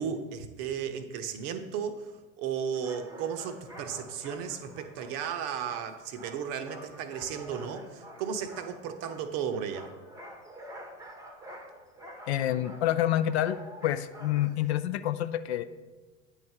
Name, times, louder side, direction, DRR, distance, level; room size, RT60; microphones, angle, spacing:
voice 1, 0.0-9.9, right 7 dB, 45° right, 9 dB, 0.7 m, -35 dB
sound 1, 2.7-14.8, equal, 10° right, 0.8 m, -48 dB
voice 2, 12.3-15.6, left 12 dB, 55° left, 12 dB, 0.4 m, -28 dB
8.8 x 3.2 x 5.4 m, 1.2 s
figure-of-eight pair, 85°, 40 cm